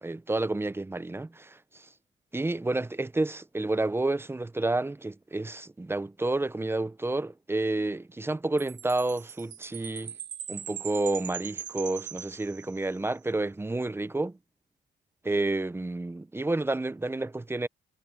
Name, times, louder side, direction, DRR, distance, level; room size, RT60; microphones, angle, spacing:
voice 1, 0.0-1.9 2.3-10.1 10.5-14.4 15.2-17.7, right 2 dB, 10° right, 0.7 m, -30 dB
Chime, 8.6-13.1, right 9 dB, 65° right, 1.4 m, -41 dB
cardioid pair, 90°, 20 cm